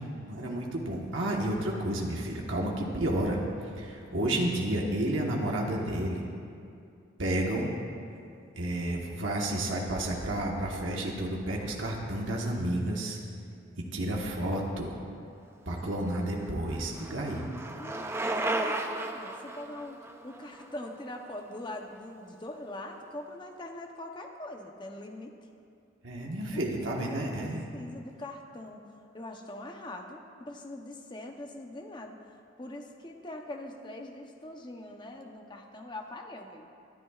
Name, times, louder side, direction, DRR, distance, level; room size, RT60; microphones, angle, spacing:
voice 1, 0.0-3.4 3.8-6.2 7.2-7.7 8.6-13.2 13.9-15.0 15.7-17.4 26.0-27.6, right 1 dB, 70° right, -1 dB, 1.3 m, -31 dB
Bicycle, 15.9-21.8, right 2 dB, 15° right, 0.5 m, -35 dB
voice 2, 17.3-25.3 26.5-26.6 26.9-36.7, left 1 dB, 25° left, 3 dB, 0.8 m, -43 dB
23.5 x 11.0 x 2.4 m, 2.5 s
head